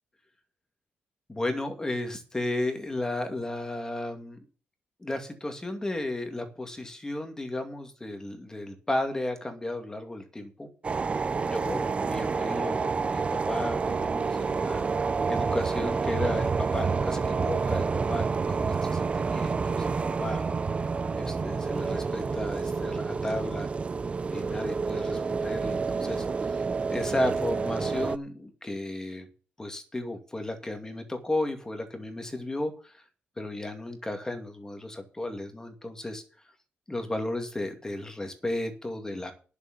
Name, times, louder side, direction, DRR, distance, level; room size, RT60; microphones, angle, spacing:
voice 1, 1.3-4.4 5.0-10.7 11.4-14.8 15.3-19.9 20.2-20.4 21.1-23.7 24.3-26.6 26.9-29.3 29.6-33.0 33.4-36.2 36.9-39.3, left 1 dB, 15° left, 5 dB, 2.3 m, -34 dB
sound 1, 10.8-28.2, right 5 dB, 30° right, 0.4 m, -29 dB
11.0 x 6.8 x 7.4 m, 0.38 s
cardioid pair, 130°, 4 cm